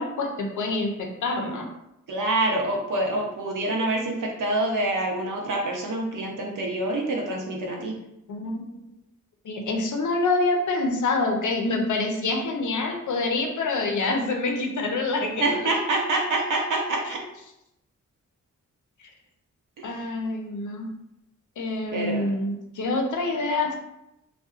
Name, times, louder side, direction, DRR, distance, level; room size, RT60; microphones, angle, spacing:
voice 1, 0.0-1.7 8.3-9.0 9.4-15.6 17.1-17.2 19.8-20.9 21.6-23.7, left 3 dB, 70° left, 2 dB, 0.6 m, -26 dB
voice 2, 2.1-7.9 15.4-17.2 19.8-20.0 21.9-22.3, right 2 dB, 70° right, 0 dB, 0.7 m, -26 dB
2.7 x 2.3 x 2.3 m, 0.85 s
cardioid pair, 55°, 32 cm